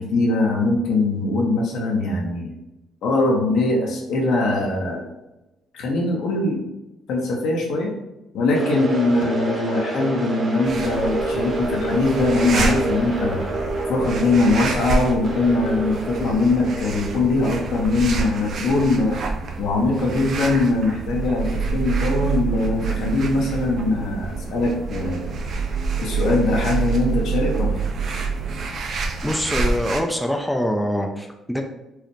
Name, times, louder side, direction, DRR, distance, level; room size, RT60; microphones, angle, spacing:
voice 1, 0.0-2.5 3.0-5.1 5.7-6.6 7.1-7.9 8.3-13.4 13.9-19.2 19.6-25.3 26.0-27.7, left 2 dB, 70° left, -1 dB, 0.9 m, -21 dB
sound 1, 8.5-18.6, right 2 dB, 35° right, 1.3 m, -28 dB
sound 2, 10.6-30.0, right 2 dB, 60° right, 0.5 m, -30 dB
sound 3, 21.0-28.6, right 7 dB, 85° right, 1.1 m, -27 dB
voice 2, 29.2-31.6, equal, 5° left, 3 dB, 0.5 m, -24 dB
4.7 x 2.1 x 3.1 m, 0.97 s
supercardioid pair, 60°, 0 cm